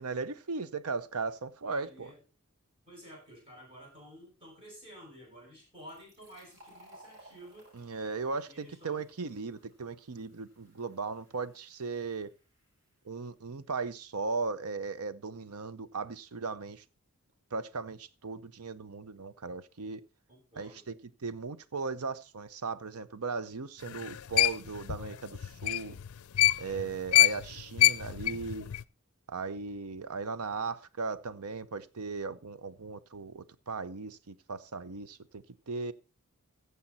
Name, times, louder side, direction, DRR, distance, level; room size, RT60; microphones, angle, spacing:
voice 1, 0.0-2.1 7.7-12.3 13.1-16.8 17.5-20.0 20.6-20.9 21.2-26.0 26.6-28.7 29.3-35.9, right 4 dB, 85° right, 0.7 m, -37 dB
voice 2, 1.6-2.2 2.9-7.7 8.5-9.0 20.3-20.8, equal, 25° right, 6.6 m, -51 dB
Fill (with liquid), 5.7-13.1, right 1 dB, 50° right, 6.3 m, -60 dB
sound 1, 23.9-26.8 27.1-28.8, left 14 dB, 75° left, 0.4 m, -25 dB
15.0 x 7.0 x 4.2 m
head